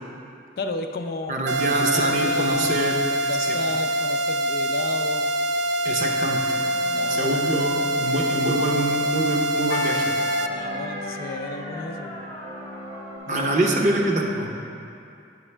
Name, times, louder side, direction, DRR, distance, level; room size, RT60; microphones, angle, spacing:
voice 1, 0.6-1.3 1.9-2.8 3.3-5.3 6.9-7.4 10.5-12.2 13.3-13.5 13.9-14.0, left 3 dB, 55° left, 5 dB, 0.4 m, -33 dB
voice 2, 1.3-3.0 3.4-3.6 5.8-6.6 7.1-10.1 13.3-14.5, right 1 dB, 45° right, 1 dB, 0.7 m, -25 dB
sound 1, 1.5-10.5, right 1 dB, 90° right, 0.3 m, -24 dB
sound 2, 5.0-13.2, left 2 dB, 30° left, 0.8 m, -38 dB
sound 3, 6.0-13.9, left 2 dB, 65° right, 1.0 m, -41 dB
8.2 x 6.0 x 3.3 m, 2.6 s
head